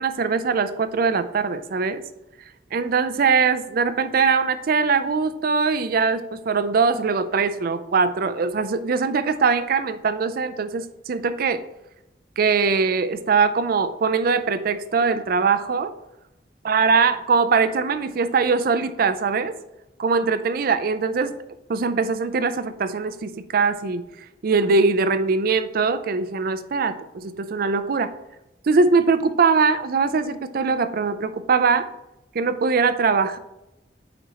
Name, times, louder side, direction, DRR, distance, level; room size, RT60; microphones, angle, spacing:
voice 1, 0.0-2.0 2.7-11.6 12.4-15.9 16.6-19.5 20.0-21.3 21.7-24.0 24.4-28.1 28.7-31.9 32.3-33.4, right 5 dB, 55° right, 12 dB, 0.4 m, -21 dB
9.1 x 4.4 x 2.9 m, 0.92 s
head